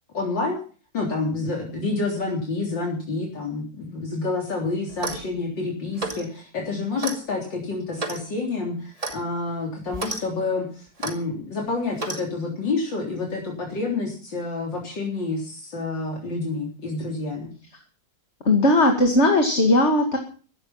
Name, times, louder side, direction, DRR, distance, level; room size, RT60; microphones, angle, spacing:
voice 1, 0.1-0.6 0.9-17.5, left 3 dB, 70° left, -1 dB, 4.3 m, -28 dB
Clock, 4.9-5.3 6.0-6.3 7.0-7.2 8.0-8.2 9.0-9.2 9.9-10.2 11.0-11.2 12.0-12.2, right 2 dB, 20° right, 2.2 m, -31 dB
voice 2, 18.5-20.2, left 1 dB, 35° left, 3 dB, 2.4 m, -18 dB
16.0 x 12.5 x 5.7 m, 0.40 s
omnidirectional pair, 2.1 m